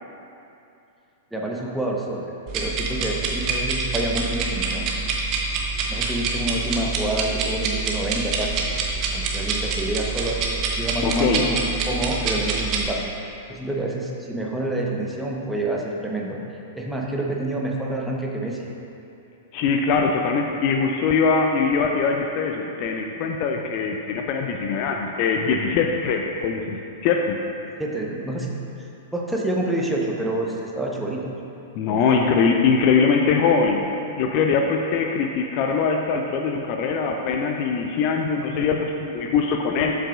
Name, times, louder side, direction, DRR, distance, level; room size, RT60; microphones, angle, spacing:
voice 1, 1.3-5.1 5.9-8.7 9.1-10.4 10.8-16.4 16.7-18.6 27.8-28.6 29.1-31.3 31.9-32.2, right 1 dB, ahead, -3 dB, 0.9 m, -28 dB
sound 1, 2.5-12.9, right 4 dB, 35° right, 0.9 m, -26 dB
voice 2, 11.0-11.5 19.5-26.8 27.0-27.4 31.8-33.9 34.2-39.9, left 5 dB, 40° left, 3 dB, 0.5 m, -22 dB
12.0 x 5.7 x 2.4 m, 2.8 s
figure-of-eight pair, 100°, 0 cm